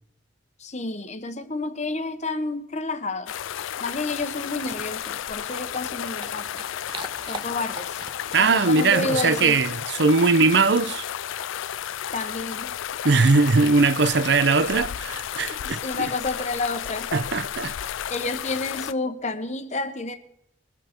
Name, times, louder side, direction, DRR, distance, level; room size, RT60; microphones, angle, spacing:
voice 1, 0.6-3.3 3.8-6.6 7.2-8.0 8.4-9.6 12.1-12.7 15.6-17.1 18.1-20.2, left 3 dB, 35° left, 1.2 m, -30 dB
sound 1, 3.3-18.9, left 10 dB, 85° left, 0.4 m, -33 dB
sound 2, 4.0-9.6, right 3 dB, 25° right, 0.7 m, -44 dB
voice 2, 8.3-11.1 13.0-16.1 17.1-17.7, right 4 dB, 60° right, 0.6 m, -20 dB
22.0 x 7.8 x 4.4 m
head